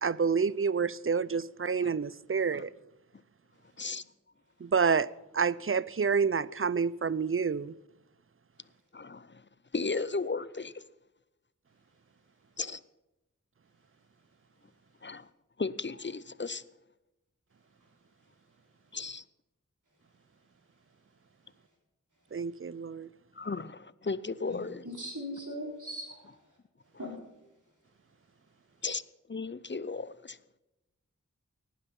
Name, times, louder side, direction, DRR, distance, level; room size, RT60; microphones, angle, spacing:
voice 1, 0.0-2.7 4.6-7.7 22.3-23.1, right 5 dB, 40° right, 0.5 m, -28 dB
voice 2, 8.9-9.3 9.7-10.7 12.6-12.8 15.0-15.2 15.6-16.6 18.9-19.2 23.4-24.8 28.8-29.0 29.3-30.4, left 4 dB, 35° left, 0.5 m, -35 dB
voice 3, 24.5-26.2 27.0-27.1, equal, 65° right, 4.5 m, -39 dB
18.0 x 10.0 x 5.4 m
wide cardioid pair, 45°, 32 cm